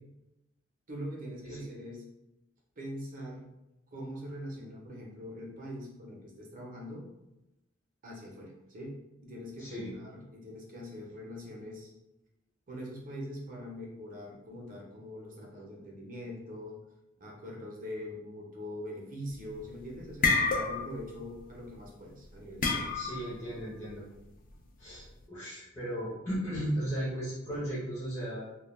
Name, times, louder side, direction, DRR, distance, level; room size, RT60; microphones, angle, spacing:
voice 1, 0.9-2.0 2.8-3.5 3.9-7.1 8.0-11.9 12.7-16.8 17.2-23.0, equal, 40° right, -2 dB, 0.6 m, -43 dB
voice 2, 9.6-9.9 22.9-24.0 24.8-28.5, equal, 15° left, -10 dB, 0.6 m, -36 dB
sound 1, 19.3-19.7 20.0-21.1 21.3-21.6 22.6-23.3, left 4 dB, 40° left, 0.3 m, -28 dB
2.2 x 2.1 x 3.1 m, 0.93 s
head